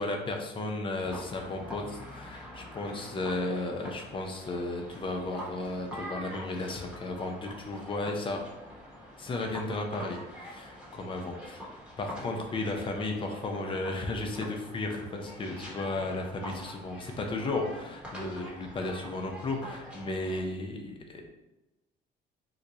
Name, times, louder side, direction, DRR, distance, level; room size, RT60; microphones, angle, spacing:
voice 1, 0.0-8.4 9.2-11.7 12.0-21.2, left 2 dB, 30° left, 3 dB, 0.6 m, -34 dB
sound 1, 1.0-20.4, equal, 5° right, 1.1 m, -45 dB
2.9 x 2.2 x 3.8 m, 1.0 s
cardioid pair, 110°, 17 cm